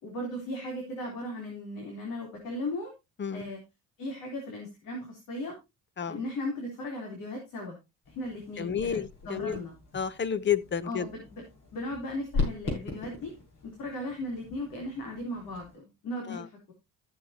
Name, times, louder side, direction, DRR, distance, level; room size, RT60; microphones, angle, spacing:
voice 1, 0.0-2.9 3.3-3.6 4.0-5.6 6.0-7.8 8.1-9.0 9.3-9.7 10.8-11.4 11.7-13.3 13.6-16.7, left 1 dB, 85° left, 3.7 m, -37 dB
sound 1, 8.0-15.8, left 3 dB, 65° left, 7.7 m, -39 dB
voice 2, 8.6-9.6 9.9-11.0 16.3-16.5, left 7 dB, 35° left, 0.8 m, -30 dB
15.0 x 7.4 x 2.9 m
cardioid pair, 90°, 32 cm